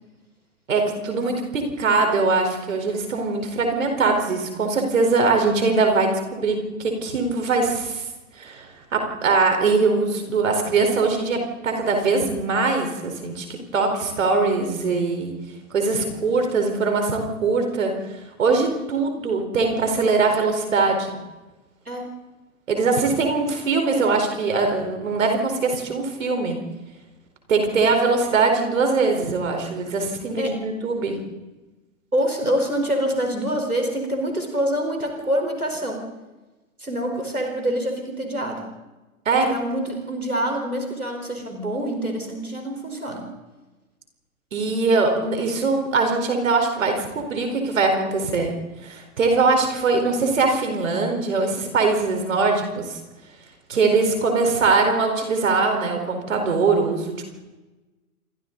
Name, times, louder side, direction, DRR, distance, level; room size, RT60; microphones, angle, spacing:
voice 1, 0.7-8.0 8.4-15.3 15.7-17.9 18.4-21.2 22.7-26.6 27.5-31.2 39.2-39.5 44.5-48.5 48.8-53.0 53.7-57.2, right 4 dB, 65° right, 4 dB, 4.6 m, -22 dB
voice 2, 32.1-36.0 36.8-38.7 39.4-43.3, equal, 90° right, 3 dB, 4.6 m, -26 dB
28.5 x 25.5 x 4.1 m, 1.1 s
figure-of-eight pair, 100°, 42 cm